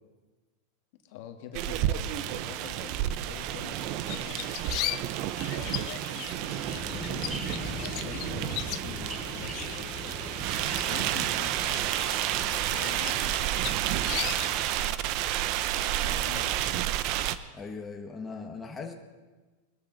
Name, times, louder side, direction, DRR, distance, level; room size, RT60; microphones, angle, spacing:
voice 1, 1.0-5.1 5.5-10.5 10.8-11.9 12.3-15.2 15.8-17.0, left 9 dB, 60° left, 5 dB, 1.7 m, -46 dB
sound 1, 1.5-17.4, right 12 dB, 50° right, 0.7 m, -30 dB
sound 2, 4.1-14.9, left 18 dB, 45° left, 0.4 m, -39 dB
sound 3, 6.6-12.0, right 1 dB, 5° right, 5.1 m, -39 dB
voice 2, 17.5-18.9, left 4 dB, 15° left, 2 dB, 1.4 m, -39 dB
21.5 x 13.0 x 4.0 m, 1.3 s
hypercardioid pair, 125°, 0 cm